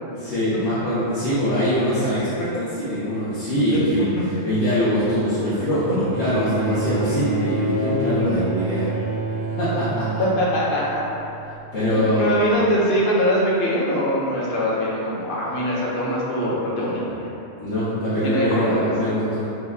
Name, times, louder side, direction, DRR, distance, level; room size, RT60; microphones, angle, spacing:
voice 1, 0.1-8.9 9.6-10.2 11.7-12.3 17.6-19.5, equal, 85° left, -13 dB, 1.1 m, -23 dB
Bowed string instrument, 6.1-11.6 12.7-12.8, right 2 dB, 90° right, 0.9 m, -27 dB
voice 2, 10.2-11.0 11.9-17.3 18.2-18.9, equal, 60° left, -5 dB, 0.7 m, -23 dB
3.1 x 2.2 x 3.4 m, 2.9 s
omnidirectional pair, 1.1 m